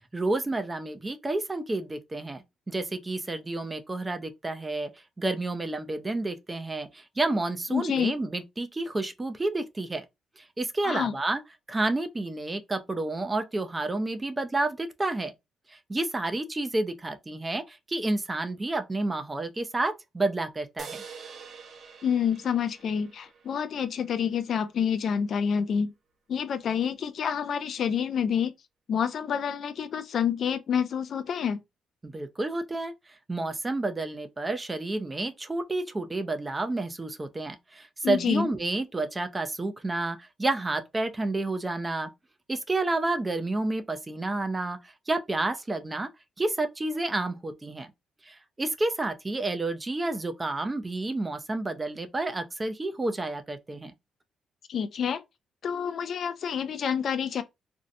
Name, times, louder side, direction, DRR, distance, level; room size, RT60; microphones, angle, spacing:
voice 1, 0.1-4.9 5.2-10.0 10.4-11.4 11.7-15.3 15.9-21.0 32.0-32.9 33.3-42.1 42.5-46.1 46.4-47.9 48.3-53.9, right 2 dB, 20° right, 0.4 m, -30 dB
voice 2, 7.7-8.1 10.8-11.1 22.0-25.9 26.3-28.5 28.9-31.6 38.0-38.5 54.7-55.2 55.6-57.4, left 7 dB, 60° left, 0.3 m, -28 dB
sound 1, 20.8-24.3, right 6 dB, 60° right, 0.7 m, -46 dB
2.6 x 2.0 x 2.5 m
cardioid pair, 90°, 0 cm